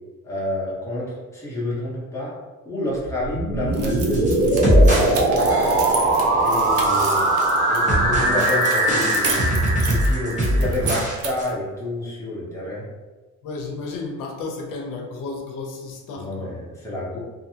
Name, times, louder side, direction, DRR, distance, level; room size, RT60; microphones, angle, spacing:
voice 1, 0.2-2.3 2.6-4.4 6.4-7.3 7.7-12.8 16.1-17.2, left 1 dB, 10° left, -7 dB, 0.8 m, -29 dB
sound 1, 3.0-11.0, right 2 dB, 80° right, 1.1 m, -21 dB
sound 2, 3.7-7.8 8.4-11.6, right 5 dB, 50° right, 0.4 m, -33 dB
sound 3, 3.9-5.1 5.4-6.1 6.6-7.5 7.9-11.1 11.4-11.5, equal, 25° right, 0.9 m, -22 dB
voice 2, 5.1-5.6 13.4-16.5, left 3 dB, 85° left, 1 dB, 0.6 m, -33 dB
2.6 x 2.6 x 2.7 m, 1.2 s
cardioid pair, 165°, 31 cm